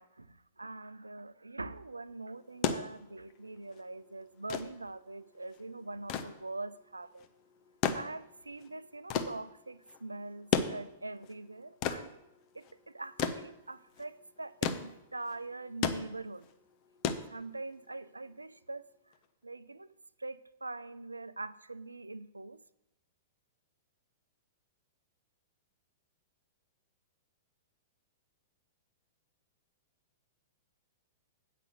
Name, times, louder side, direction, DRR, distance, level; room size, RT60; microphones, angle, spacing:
voice 1, 0.0-7.3 7.9-12.1 12.5-16.5 17.3-19.1 19.4-19.9 20.2-22.6, right 2 dB, 85° right, 0.4 m, -43 dB
sound 1, 2.4-17.9 19.1-19.2, left 7 dB, 40° left, 0.9 m, -36 dB
8.3 x 5.8 x 7.8 m
figure-of-eight pair, 105°, 0 cm